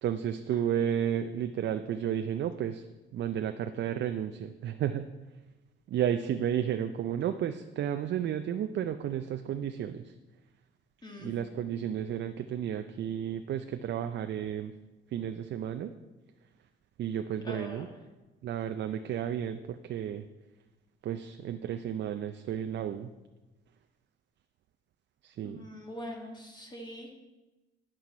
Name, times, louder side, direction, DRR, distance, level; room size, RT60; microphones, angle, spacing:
voice 1, 0.0-2.8 3.1-5.0 5.9-10.0 11.2-14.7 15.1-15.9 17.0-17.9 18.4-20.2 21.0-23.1 25.2-25.6, right 9 dB, 65° right, 8 dB, 0.5 m, -32 dB
voice 2, 11.0-11.3 17.4-17.8 25.4-27.1, equal, 20° left, 1 dB, 1.7 m, -43 dB
9.0 x 8.2 x 4.3 m, 1.1 s
cardioid pair, 90°, 20 cm